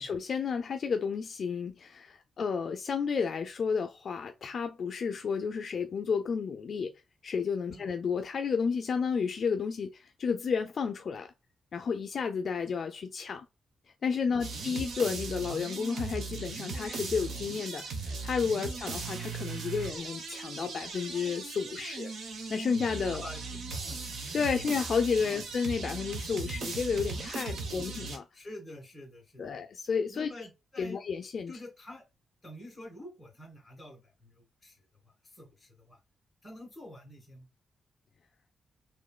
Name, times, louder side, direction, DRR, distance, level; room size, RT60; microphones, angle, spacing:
voice 1, 0.0-6.9 7.2-11.3 11.7-13.4 14.0-22.1 22.5-23.2 24.3-28.2 29.4-30.5 30.8-31.5, left 5 dB, 50° left, 0.4 m, -32 dB
voice 2, 14.3-14.6 18.6-18.7 23.1-24.0 25.3-25.4 27.5-27.6 28.3-29.5 30.1-31.0 31.5-32.0 32.4-34.8 35.0-36.0 36.4-37.5, left 1 dB, 5° left, 2.2 m, -48 dB
sound 1, 14.4-28.2, right 4 dB, 75° right, 0.9 m, -38 dB
5.1 x 3.1 x 2.2 m
wide cardioid pair, 140°, 0 cm